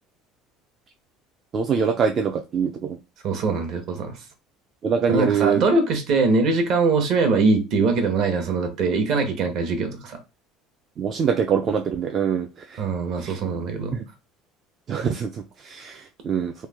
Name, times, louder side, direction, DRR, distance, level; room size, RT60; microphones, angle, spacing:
voice 1, 1.5-3.0 4.8-5.6 11.0-12.8 13.2-13.4 13.9-14.0 14.9-16.5, right 6 dB, 30° right, 0.3 m, -24 dB
voice 2, 3.2-4.2 5.1-10.2 12.8-14.0, right 4 dB, 50° right, 0.9 m, -22 dB
3.1 x 2.1 x 3.3 m
cardioid pair, 155°, 0 cm